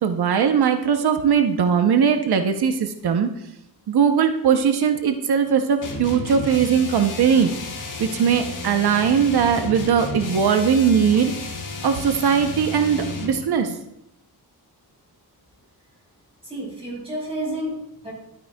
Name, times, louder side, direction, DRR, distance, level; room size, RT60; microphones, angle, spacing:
voice 1, 0.0-3.3 3.9-7.5 8.0-11.3 11.8-13.8, right 7 dB, 80° right, 7 dB, 0.7 m, -20 dB
sound 1, 5.8-13.4, left 2 dB, 55° left, 1.3 m, -32 dB
voice 2, 16.4-18.1, right 1 dB, 15° right, -5 dB, 3.7 m, -30 dB
12.0 x 9.2 x 2.2 m, 0.83 s
wide cardioid pair, 175°, 38 cm